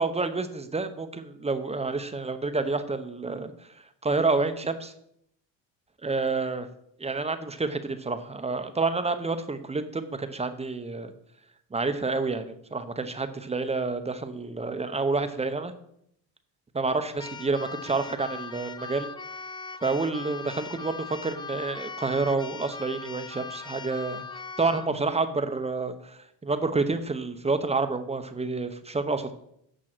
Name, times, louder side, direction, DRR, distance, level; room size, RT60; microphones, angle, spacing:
voice 1, 0.0-3.5 4.0-4.9 6.0-6.7 7.0-11.1 11.7-15.7 16.7-19.1 19.8-24.2 24.6-29.3, right 3 dB, 15° right, 9 dB, 0.7 m, -29 dB
Keyboard (musical), 17.2-24.9, left 5 dB, 10° left, 0.3 m, -40 dB
8.9 x 6.2 x 6.0 m, 0.72 s
cardioid pair, 120°, 48 cm